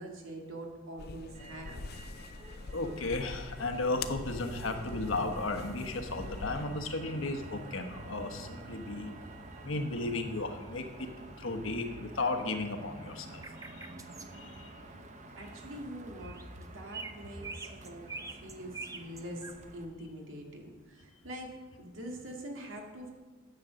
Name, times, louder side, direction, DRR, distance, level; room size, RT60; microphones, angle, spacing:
voice 1, 0.0-2.0 15.4-23.1, right 1 dB, 75° right, 1 dB, 2.1 m, -44 dB
sound 1, 1.0-6.6, left 4 dB, 50° left, 0.6 m, -44 dB
Motor vehicle (road), 1.3-19.8, right 2 dB, 35° right, 1.0 m, -49 dB
voice 2, 2.7-9.1 9.6-11.1 11.4-13.4 13.8-13.9 14.3-14.7, left 2 dB, 80° left, 6 dB, 1.2 m, -34 dB
sound 2, 13.4-14.3 16.2-16.6 16.9-19.5, right 4 dB, 15° right, 0.6 m, -43 dB
10.5 x 7.9 x 6.4 m, 1.3 s
head